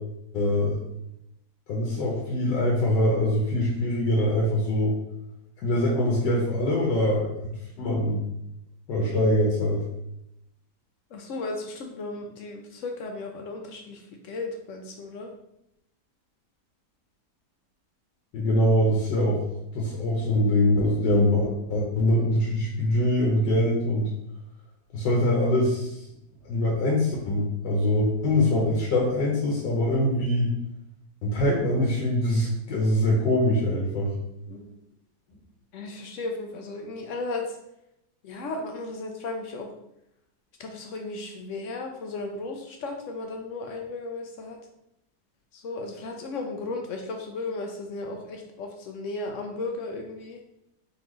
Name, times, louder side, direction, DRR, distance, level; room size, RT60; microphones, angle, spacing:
voice 1, 0.3-0.8 1.7-5.0 5.6-7.5 7.8-8.2 8.9-9.8 18.3-19.4 19.7-24.1 24.9-26.0 26.4-30.5 31.2-34.1, left 1 dB, 90° left, -3 dB, 1.5 m, -23 dB
voice 2, 11.1-15.3 34.5-34.7 35.7-37.6 38.2-39.7 40.6-44.6 45.5-50.4, left 3 dB, 70° left, 3 dB, 0.7 m, -35 dB
3.9 x 3.4 x 3.1 m, 0.80 s
omnidirectional pair, 1.8 m